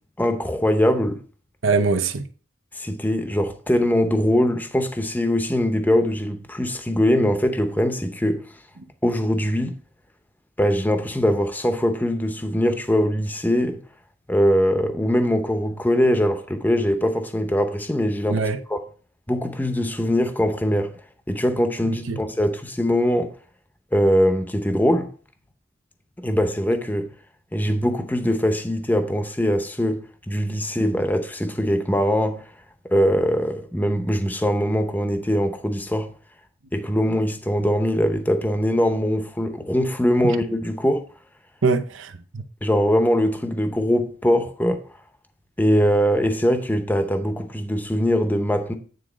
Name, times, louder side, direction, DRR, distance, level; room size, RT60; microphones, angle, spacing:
voice 1, 0.2-1.2 2.7-8.5 9.0-9.7 10.6-13.8 14.3-18.4 18.7-18.8 19.3-20.9 21.3-23.3 23.9-25.1 26.2-27.1 27.5-32.5 32.8-36.1 36.7-41.0 42.6-44.8 45.6-48.7, equal, 10° left, 0.7 m, -22 dB
voice 2, 1.6-2.2 18.3-18.6 21.8-22.2 40.2-40.4 41.6-42.4, right 4 dB, 85° right, 0.8 m, -23 dB
9.4 x 3.8 x 5.0 m
head